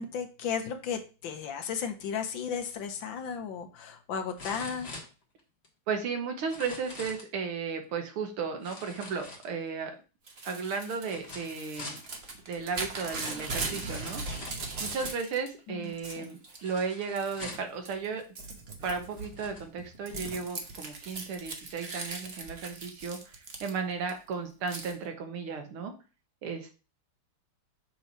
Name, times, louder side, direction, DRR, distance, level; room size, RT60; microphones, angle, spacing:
voice 1, 0.0-4.9 15.7-16.3, left 7 dB, 70° left, 6 dB, 1.5 m, -35 dB
sound 1, 3.0-3.1 4.4-5.7 6.4-7.3 8.6-9.8 11.0-12.1 13.1-13.2 13.7-14.7 16.6-17.8 18.6-18.7 19.1-19.7 20.3-20.4, left 3 dB, 35° left, 1.4 m, -45 dB
voice 2, 5.9-9.9 10.5-12.0 12.5-14.2 14.8-18.2 18.8-25.9 26.4-26.7, right 5 dB, 85° right, 5 dB, 2.1 m, -34 dB
Crumpling crinkling / Tearing, 10.3-15.5 15.8-16.6 17.1-17.6 17.8-24.1 24.7-24.9, right 3 dB, 40° right, 0.9 m, -39 dB
6.8 x 3.1 x 5.4 m, 0.33 s
omnidirectional pair, 2.3 m